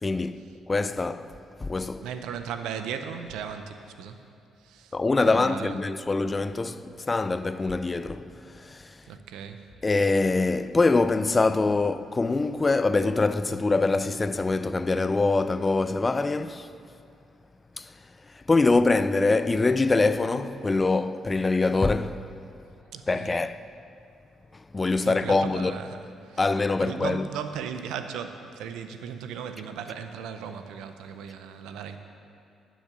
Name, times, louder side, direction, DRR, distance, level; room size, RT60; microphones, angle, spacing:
voice 1, 0.0-2.1 4.9-9.1 9.8-16.7 17.8-22.3 23.1-23.6 24.5-25.7 26.4-27.3, left 3 dB, 25° left, 0.4 m, -24 dB
voice 2, 2.0-4.2 4.6-5.8 9.0-9.6 22.9-23.4 25.0-26.0 26.2-26.5 26.8-32.0, right 7 dB, 90° right, 0.7 m, -37 dB
12.0 x 6.3 x 6.9 m
cardioid pair, 90°, 0 cm